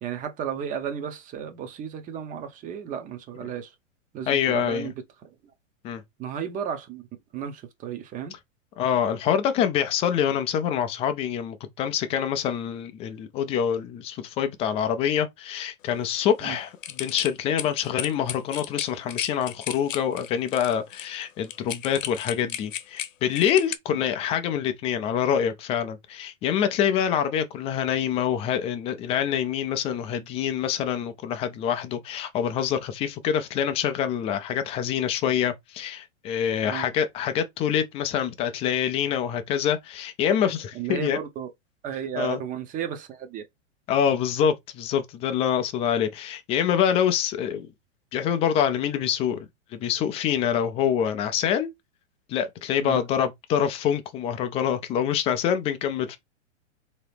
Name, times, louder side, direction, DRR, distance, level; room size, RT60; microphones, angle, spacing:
voice 1, 0.0-3.7 4.1-4.9 5.2-5.3 6.2-7.1 7.3-8.4 16.4-16.6 23.9-24.1 36.7-36.9 40.7-41.5 41.8-43.4 52.8-53.0, right 8 dB, 20° right, 0.7 m, -33 dB
voice 2, 4.3-4.9 5.8-6.0 8.8-41.2 42.2-42.4 43.9-47.7 48.1-51.7 52.3-56.2, left 9 dB, 15° left, 0.4 m, -26 dB
sound 1, 16.8-23.8, left 10 dB, 90° left, 0.8 m, -34 dB
3.7 x 2.9 x 3.4 m
hypercardioid pair, 135°, 37 cm